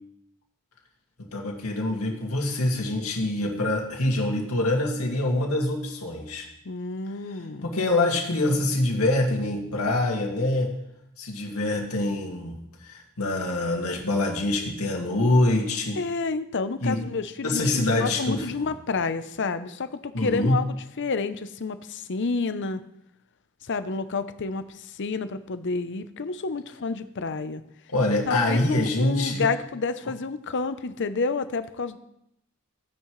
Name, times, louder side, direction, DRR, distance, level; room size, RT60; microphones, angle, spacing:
voice 1, 1.2-6.5 7.6-10.7 11.2-16.0 16.8-17.0 17.4-18.5 20.1-20.6 27.9-29.5, left 1 dB, 80° left, 0 dB, 2.1 m, -25 dB
voice 2, 6.6-7.7 16.0-22.8 23.7-27.6 28.3-32.0, left 4 dB, 55° left, 11 dB, 0.7 m, -29 dB
15.0 x 9.6 x 3.2 m, 0.81 s
head